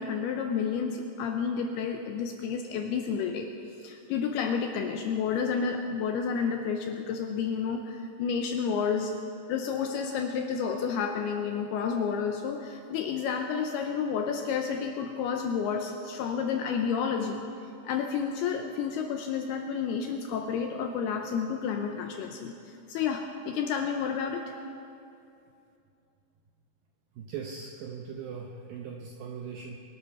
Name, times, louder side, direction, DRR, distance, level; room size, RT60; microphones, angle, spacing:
voice 1, 0.0-3.5 3.8-9.1 9.5-17.4 17.8-24.6, left 6 dB, 80° left, 4 dB, 2.4 m, -30 dB
voice 2, 27.2-29.8, right 6 dB, 80° right, 1 dB, 2.1 m, -39 dB
23.5 x 12.5 x 4.4 m, 2.6 s
omnidirectional pair, 5.2 m